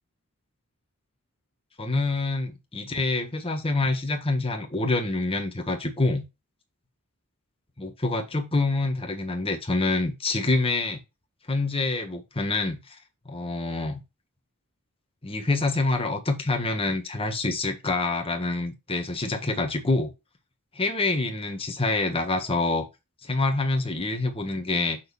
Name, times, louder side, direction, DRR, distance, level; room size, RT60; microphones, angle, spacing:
voice 1, 1.8-6.2 7.8-11.0 11.5-12.8 13.2-14.0 15.2-20.1 20.7-22.9 23.2-25.0, left 2 dB, 25° left, 1.6 m, -26 dB
7.4 x 5.5 x 4.2 m
head